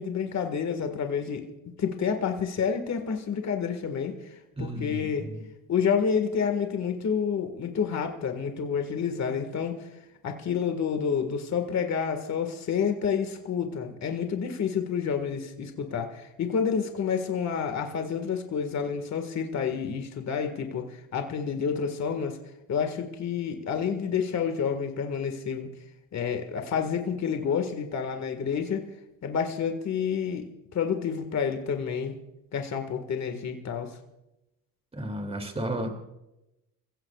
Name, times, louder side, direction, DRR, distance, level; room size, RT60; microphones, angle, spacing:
voice 1, 0.0-1.5 1.8-4.2 4.6-5.3 5.7-9.9 10.2-22.4 22.7-25.7 26.1-28.8 29.2-30.4 30.7-32.2 32.5-33.9, left 6 dB, 45° left, 6 dB, 1.8 m, -29 dB
voice 2, 4.6-5.3 34.9-35.9, right 1 dB, 15° right, 4 dB, 2.7 m, -33 dB
29.5 x 15.5 x 2.4 m, 0.92 s
cardioid pair, 105°, 38 cm